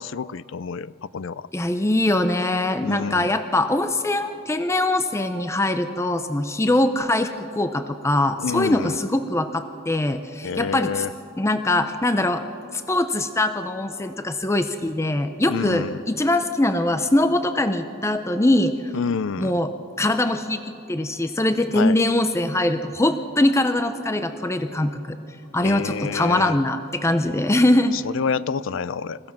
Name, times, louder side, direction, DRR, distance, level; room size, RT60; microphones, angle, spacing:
voice 1, 0.0-1.5 2.8-3.3 8.4-9.0 10.4-11.1 15.5-16.0 18.9-19.6 21.7-22.0 25.6-26.6 27.9-29.2, left 6 dB, 70° left, 19 dB, 0.4 m, -28 dB
voice 2, 1.5-11.1 11.4-12.4 12.7-18.9 19.4-19.7 20.0-20.6 20.9-25.2 25.5-28.0, left 1 dB, 15° left, 9 dB, 0.6 m, -22 dB
28.5 x 15.5 x 6.0 m, 2.8 s
head